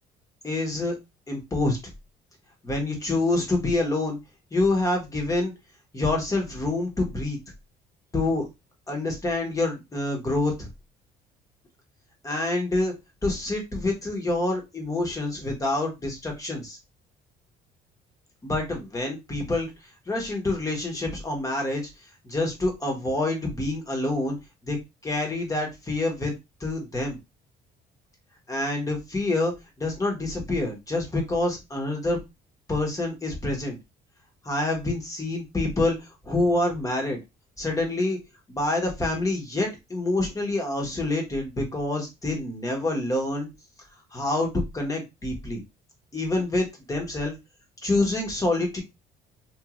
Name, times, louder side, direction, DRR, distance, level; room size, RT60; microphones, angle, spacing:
voice 1, 0.4-0.9 1.3-1.8 2.6-4.2 4.5-5.5 5.9-7.4 8.1-8.5 8.9-10.7 12.2-12.9 13.2-16.8 18.4-19.7 20.1-21.9 22.2-24.4 24.6-24.8 25.0-26.3 26.6-27.2 28.5-29.5 29.8-32.2 32.7-33.8 34.4-37.2 37.6-38.2 38.5-43.5 44.1-45.6 46.1-47.3 47.8-48.8, left 2 dB, 20° left, 1 dB, 1.1 m, -27 dB
3.0 x 2.5 x 2.4 m, 0.23 s
cardioid pair, 110°, 17 cm